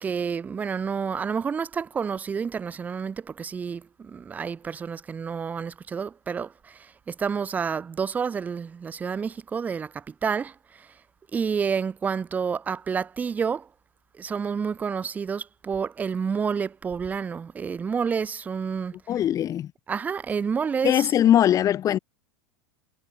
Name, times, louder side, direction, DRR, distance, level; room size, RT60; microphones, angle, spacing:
voice 1, 0.0-10.9 11.3-13.7 14.2-19.0 19.9-21.1, right 6 dB, 15° right, 0.3 m, -29 dB
voice 2, 19.1-19.7 20.8-22.0, left 11 dB, 30° left, 1.0 m, -21 dB
figure-of-eight pair, 85°, 12 cm